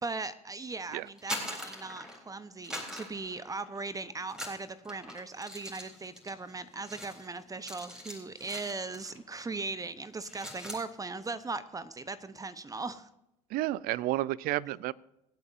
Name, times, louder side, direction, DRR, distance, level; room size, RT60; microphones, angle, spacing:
voice 1, 0.0-13.1, right 3 dB, 20° right, 14 dB, 0.8 m, -39 dB
sound 1, 1.1-2.3 2.6-3.9 4.3-9.2 9.5-9.7 10.1-10.9, equal, 5° right, 3.7 m, -42 dB
voice 2, 13.5-14.9, right 16 dB, 60° right, 22 dB, 0.5 m, -31 dB
26.0 x 8.8 x 2.6 m, 0.87 s
hypercardioid pair, 70°, 17 cm